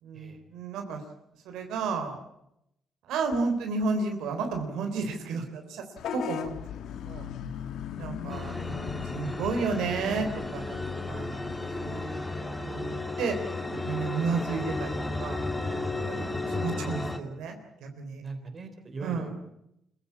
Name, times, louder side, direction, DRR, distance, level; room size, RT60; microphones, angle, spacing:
voice 1, 0.0-1.0 1.4-2.2 3.0-5.8 6.1-6.6 7.1-7.3 8.0-11.5 11.8-12.2 12.6-13.4 13.7-15.4 15.9-18.2 19.0-19.3, right 4 dB, 85° right, 5 dB, 3.6 m, -32 dB
Vehicle horn car horn honking / Bus, 6.0-12.0, left 9 dB, 75° left, 1.4 m, -39 dB
sound 1, 8.3-17.2, left 2 dB, 15° left, 2.4 m, -34 dB
voice 2, 8.4-9.1 18.2-19.3, right 3 dB, 40° right, 7 dB, 3.8 m, -41 dB
25.5 x 15.5 x 8.6 m, 0.81 s
cardioid pair, 90°, 0 cm